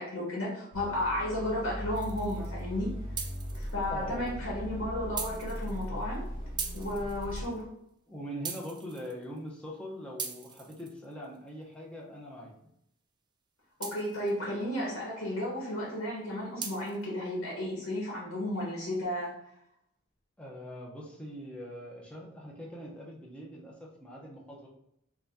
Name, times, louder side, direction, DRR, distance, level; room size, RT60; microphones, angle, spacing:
voice 1, 0.0-2.9 3.5-6.2 6.7-7.7 13.8-19.3, left 1 dB, 75° left, -4 dB, 1.3 m, -33 dB
sound 1, 0.7-7.4, equal, 45° left, 1.5 m, -39 dB
sound 2, 1.9-2.6 3.2-3.9 4.3-4.4 5.2-6.1 6.6-7.6 8.4-9.4 10.2-11.4 13.8-14.4 16.6-17.1, right 6 dB, 20° right, 0.3 m, -40 dB
voice 2, 3.9-4.5 8.1-12.5 20.4-24.7, equal, 5° left, -3 dB, 0.7 m, -42 dB
3.5 x 2.7 x 3.5 m, 0.76 s
head